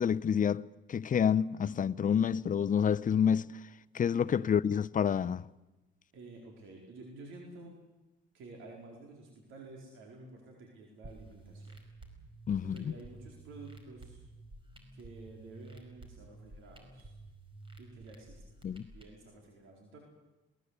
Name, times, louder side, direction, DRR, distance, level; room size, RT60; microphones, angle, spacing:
voice 1, 0.0-3.6 3.9-5.5 12.5-12.9 18.6-18.9, left 8 dB, 40° left, 0.7 m, -28 dB
voice 2, 6.1-7.8 8.3-11.8 12.6-14.2 14.9-17.1 17.8-18.6 18.9-20.0, right 3 dB, 85° right, 4.5 m, -51 dB
sound 1, 11.0-19.0, right 2 dB, 25° right, 5.0 m, -52 dB
22.5 x 19.0 x 8.3 m
cardioid pair, 90°, 20 cm